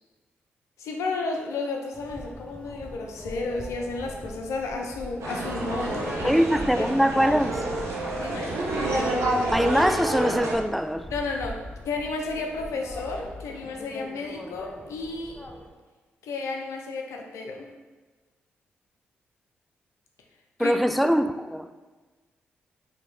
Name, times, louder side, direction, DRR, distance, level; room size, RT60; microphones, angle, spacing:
voice 1, 0.8-6.4 6.8-6.9 8.2-8.6 11.1-11.6 11.8-15.4 16.2-17.7 20.6-20.8, left 3 dB, 75° left, 0.6 m, -32 dB
sound 1, 1.9-15.7, equal, 25° left, 0.7 m, -43 dB
sound 2, 5.2-10.5, right 2 dB, 70° right, 0.8 m, -28 dB
sound 3, 5.5-13.7, left 2 dB, 45° right, 1.5 m, -46 dB
voice 2, 6.2-7.6 9.5-11.1 20.6-21.7, equal, ahead, 0.3 m, -23 dB
3.6 x 2.9 x 3.3 m
hypercardioid pair, 40°, 5 cm